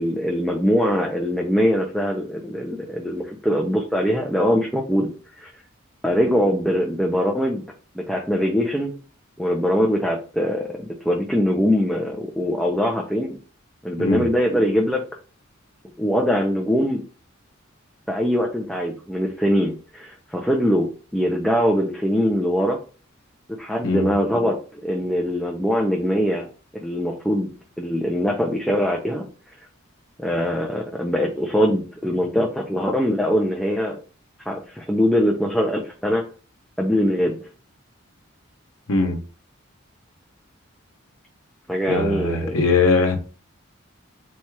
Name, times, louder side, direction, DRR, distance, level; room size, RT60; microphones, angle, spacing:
voice 1, 0.0-5.1 5.4-5.5 6.0-7.7 8.0-8.9 9.4-13.4 13.8-15.0 16.0-17.0 18.1-22.8 23.6-26.5 26.8-27.5 27.8-29.3 30.2-34.0 34.5-36.2 36.8-37.4 41.7-42.6, equal, ahead, 0.5 m, -22 dB
voice 2, 41.9-43.2, left 3 dB, 85° left, 0.9 m, -20 dB
4.2 x 2.4 x 4.6 m
head